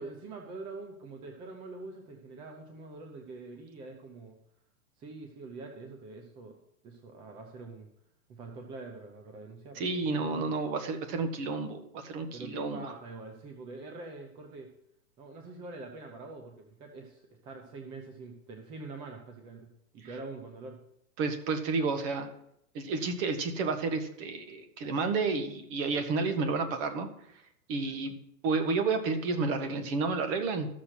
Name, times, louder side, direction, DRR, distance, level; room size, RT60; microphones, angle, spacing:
voice 1, 0.0-4.4 5.0-6.6 6.8-7.9 8.3-10.5 12.3-14.7 15.2-20.8, right 3 dB, 10° right, 3 dB, 0.5 m, -45 dB
voice 2, 9.7-12.8 21.2-22.3 22.7-27.1 27.7-28.1 28.4-30.7, right 4 dB, 35° right, 7 dB, 1.6 m, -31 dB
13.5 x 6.6 x 5.9 m, 0.75 s
hypercardioid pair, 145°, 45 cm